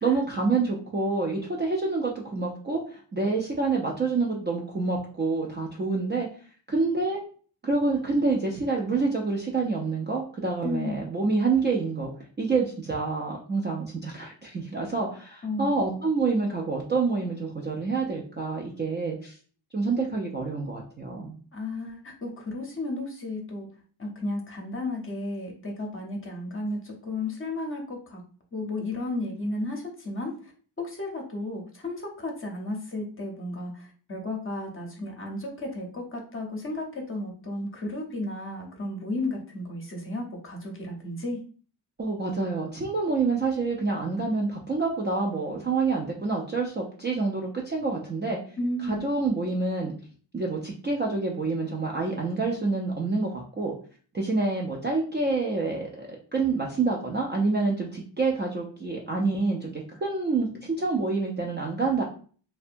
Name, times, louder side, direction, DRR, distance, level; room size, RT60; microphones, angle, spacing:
voice 1, 0.0-6.3 6.7-7.2 7.6-12.1 12.4-19.4 19.7-21.3 42.0-48.4 48.8-49.9 50.3-53.7 54.1-62.0, right 3 dB, 25° right, -2 dB, 0.3 m, -27 dB
voice 2, 10.6-11.0 15.4-15.9 21.5-23.7 24.0-28.2 28.5-30.5 30.8-41.4 48.6-49.0, left 2 dB, 30° left, 0 dB, 0.7 m, -33 dB
2.6 x 2.2 x 2.5 m, 0.42 s
wide cardioid pair, 115°, 46 cm